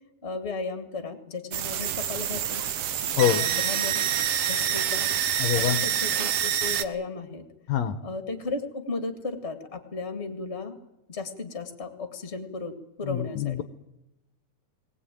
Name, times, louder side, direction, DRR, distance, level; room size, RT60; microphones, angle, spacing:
voice 1, 0.2-2.6 3.0-4.0 4.5-5.1 5.5-7.4 8.0-10.8 11.1-13.6, left 3 dB, 25° left, 7 dB, 1.7 m, -35 dB
sound 1, 1.5-6.8, right 9 dB, 65° right, 1.7 m, -27 dB
voice 2, 3.1-3.5 5.4-5.8 7.7-8.0 13.0-13.6, left 10 dB, 65° left, 9 dB, 2.0 m, -25 dB
22.5 x 18.5 x 9.2 m, 0.90 s
omnidirectional pair, 3.7 m